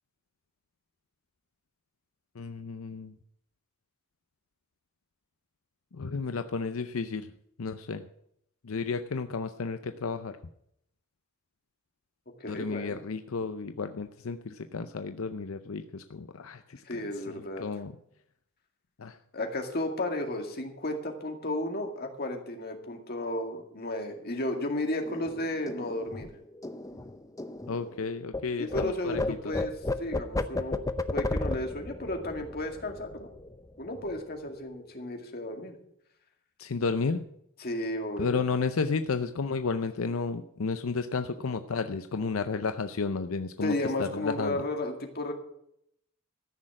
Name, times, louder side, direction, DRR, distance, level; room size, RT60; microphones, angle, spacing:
voice 1, 2.4-3.1 5.9-7.3 7.6-8.1 8.6-10.4 12.5-17.0 17.3-17.9 19.0-19.2 27.7-29.4 36.6-37.2 38.2-44.6, left 4 dB, 80° left, 9 dB, 0.6 m, -32 dB
voice 2, 12.4-13.0 16.8-17.7 19.3-26.3 28.6-29.7 30.0-30.8 31.1-33.3 33.8-35.8 37.6-38.4 43.6-45.3, left 1 dB, 50° left, 4 dB, 2.2 m, -33 dB
sound 1, 25.0-28.4 28.7-33.7 34.0-34.2 34.5-35.0, left 2 dB, 15° left, 0.7 m, -34 dB
14.0 x 6.5 x 8.7 m, 0.74 s
head